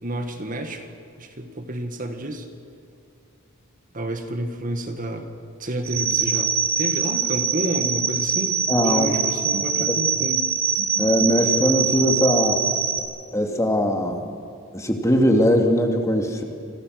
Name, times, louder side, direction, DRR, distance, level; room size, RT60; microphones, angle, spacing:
voice 1, 0.0-0.8 1.2-2.5 3.9-5.3 5.6-10.5, right 1 dB, 40° right, 6 dB, 2.0 m, -30 dB
sound 1, 5.9-13.0, right 7 dB, 75° right, 3.7 m, -23 dB
voice 2, 8.7-9.1 9.5-10.0 10.8-12.6 13.3-14.3 14.7-16.4, equal, 15° left, 3 dB, 2.6 m, -21 dB
30.0 x 25.5 x 6.6 m, 2.5 s
head